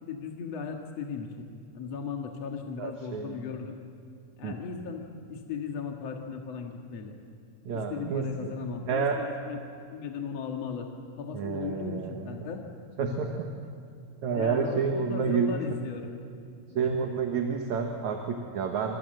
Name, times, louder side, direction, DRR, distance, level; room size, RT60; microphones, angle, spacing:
voice 1, 0.0-1.5 1.7-3.8 4.4-5.0 5.3-7.2 7.7-9.6 9.9-10.9 11.2-12.6 14.3-16.1 16.7-17.1, left 6 dB, 55° left, 1 dB, 2.6 m, -37 dB
voice 2, 2.8-3.5 4.4-4.6 7.6-8.5 8.8-9.2 11.3-12.2 13.0-13.5 14.2-15.6 16.8-19.0, right 6 dB, 60° right, 3 dB, 2.7 m, -29 dB
27.0 x 25.5 x 7.8 m, 2.5 s
omnidirectional pair, 3.9 m